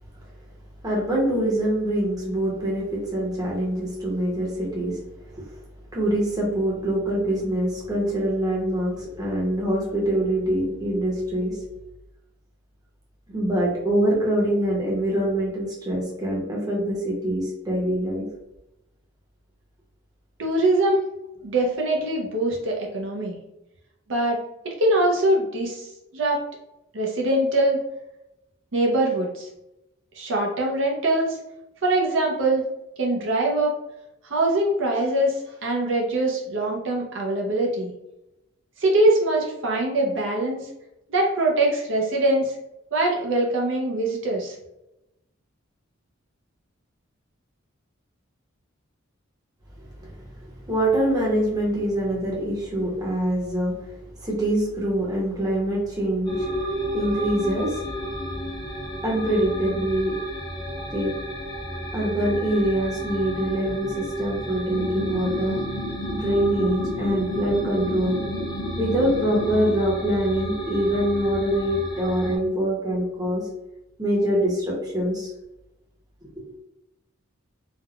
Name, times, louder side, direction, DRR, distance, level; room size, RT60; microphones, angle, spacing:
voice 1, 0.8-5.0 5.4-5.5 5.9-11.6 13.3-18.2 50.0-53.9 54.2-56.5 56.9-57.8 59.0-60.1 60.9-61.1 61.9-65.6 66.1-68.2 68.7-73.4 74.0-75.3 76.2-76.3, right 1 dB, 20° right, -4 dB, 0.7 m, -24 dB
voice 2, 20.4-21.0 21.4-23.4 24.1-24.4 24.6-26.4 26.9-27.8 28.7-29.5 30.1-31.4 31.8-32.6 33.0-33.7 34.2-37.9 38.8-40.7 41.1-42.6 42.9-44.6, right 1 dB, 60° right, -2 dB, 0.5 m, -23 dB
sound 1, 56.3-72.4, equal, 20° left, 0.4 m, -33 dB
sound 2, 64.7-69.8, left 1 dB, 90° right, 1.1 m, -33 dB
3.3 x 2.1 x 2.3 m, 0.90 s
head